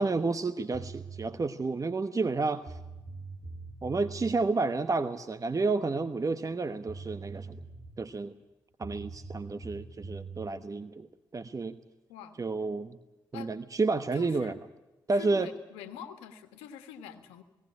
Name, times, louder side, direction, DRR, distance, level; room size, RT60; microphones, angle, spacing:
voice 1, 0.0-2.8 3.8-7.6 8.0-8.3 8.8-11.1 11.3-11.8 12.4-13.0 13.3-14.6 15.1-15.5, right 3 dB, 35° right, 12 dB, 1.1 m, -30 dB
sound 1, 0.7-1.3 2.3-2.4 2.7-4.4 6.5-6.6 6.9-8.1 8.8-10.5, right 4 dB, 70° right, 2.3 m, -43 dB
voice 2, 14.1-14.6 15.1-17.4, left 8 dB, 85° left, 9 dB, 1.5 m, -45 dB
18.0 x 18.0 x 9.9 m, 1.0 s
hypercardioid pair, 40°, 10 cm